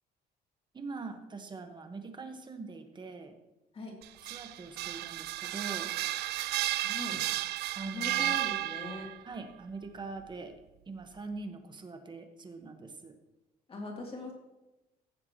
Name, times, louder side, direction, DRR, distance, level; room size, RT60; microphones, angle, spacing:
voice 1, 0.7-3.4 4.2-5.9 7.7-8.4 9.2-10.5 10.9-13.2, right 4 dB, 25° right, 6 dB, 1.4 m, -43 dB
sound 1, 4.0-9.2, right 15 dB, 75° right, 0.4 m, -33 dB
voice 2, 6.8-7.2 7.8-9.1 13.7-14.3, left 3 dB, 35° left, 0 dB, 3.0 m, -41 dB
15.5 x 7.3 x 3.1 m, 0.99 s
cardioid pair, 110°, 17 cm